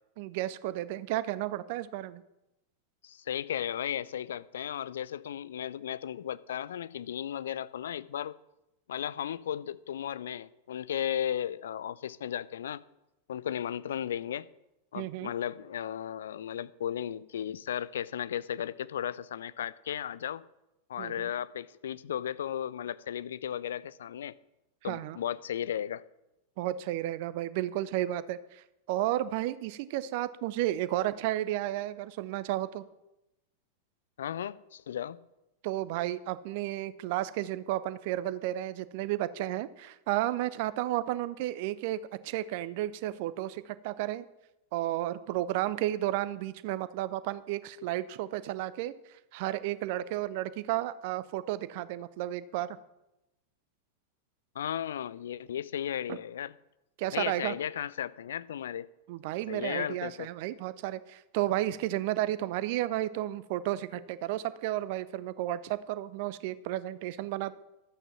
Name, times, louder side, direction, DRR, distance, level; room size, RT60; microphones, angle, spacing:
voice 1, 0.2-2.2 14.9-15.3 21.0-21.3 24.8-25.2 26.6-32.8 35.6-42.0 42.2-44.2 44.7-48.9 49.3-52.8 56.1-56.2 57.0-57.5 59.1-67.5, right 14 dB, 50° right, 0.6 m, -32 dB
voice 2, 3.0-8.4 8.9-12.8 13.3-14.5 14.9-20.4 20.9-24.3 24.8-26.0 34.2-35.2 54.5-56.5 57.1-58.9 59.5-60.3, left 10 dB, 60° left, 0.4 m, -35 dB
12.0 x 9.1 x 5.9 m
figure-of-eight pair, 90°, 0 cm